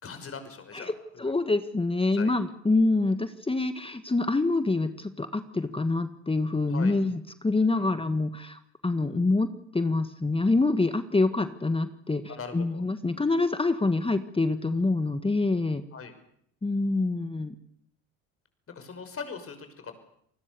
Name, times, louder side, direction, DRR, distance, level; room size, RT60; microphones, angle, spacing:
voice 1, 0.0-1.3 2.1-2.3 6.7-6.9 7.7-7.9 12.3-12.8 15.9-16.1 18.7-20.0, left 5 dB, 40° left, 8 dB, 5.9 m, -41 dB
voice 2, 0.7-12.2 12.5-15.8 16.6-17.6, left 3 dB, 15° left, 10 dB, 1.7 m, -26 dB
29.0 x 20.0 x 7.0 m, 0.68 s
hypercardioid pair, 60°, 35 cm